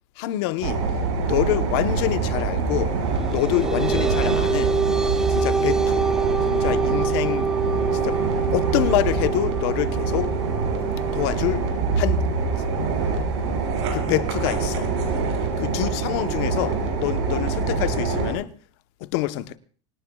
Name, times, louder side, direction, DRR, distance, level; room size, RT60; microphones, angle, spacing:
voice 1, 0.2-0.8 1.2-3.0 3.3-4.8 5.3-6.1 6.4-7.5 7.9-10.3 11.1-11.7 12.0-12.2 13.9-14.9 15.6-18.5 19.0-19.6, left 16 dB, 65° left, 1.0 m, -26 dB
sound 1, 0.6-18.3, right 4 dB, 90° right, 6.2 m, -25 dB
sound 2, 3.1-14.1, right 4 dB, 5° right, 0.8 m, -27 dB
25.0 x 18.0 x 2.3 m
supercardioid pair, 150°, 14 cm